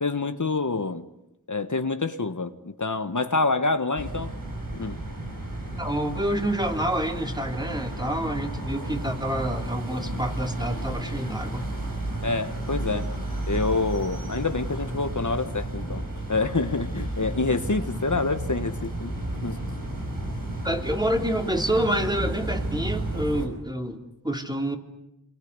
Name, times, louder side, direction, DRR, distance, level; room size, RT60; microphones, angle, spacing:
voice 1, 0.0-1.0 1.5-4.3 4.7-5.0 12.2-13.1 13.5-16.0 16.3-19.1 19.4-19.6, left 3 dB, 60° left, 9 dB, 1.5 m, -27 dB
sound 1, 4.0-23.5, right 1 dB, 80° right, 5.5 m, -32 dB
voice 2, 5.8-11.7 20.6-24.8, right 1 dB, 10° right, 4 dB, 3.4 m, -28 dB
27.0 x 22.0 x 9.7 m, 0.87 s
wide cardioid pair, 45°, 33 cm